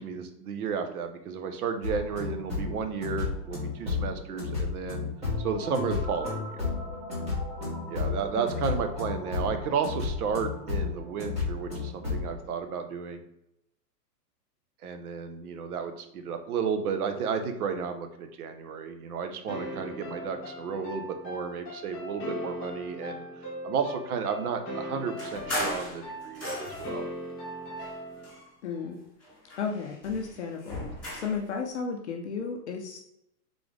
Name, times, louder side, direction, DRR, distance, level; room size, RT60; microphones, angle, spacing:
voice 1, 0.0-5.1 5.4-6.6 7.9-13.2 14.8-23.2 23.6-27.0, right 6 dB, 65° right, 7 dB, 0.8 m, -32 dB
sound 1, 1.8-12.3, left 4 dB, 15° right, 1.4 m, -32 dB
sound 2, 19.5-28.4, equal, 20° left, 1.2 m, -39 dB
sound 3, 25.2-27.0 27.7-28.9 29.2-31.4, left 1 dB, ahead, 1.6 m, -37 dB
voice 2, 28.6-29.0 29.6-30.8 31.1-33.0, left 5 dB, 45° left, 2 dB, 0.5 m, -33 dB
3.9 x 3.6 x 3.3 m, 0.80 s
hypercardioid pair, 155°, 48 cm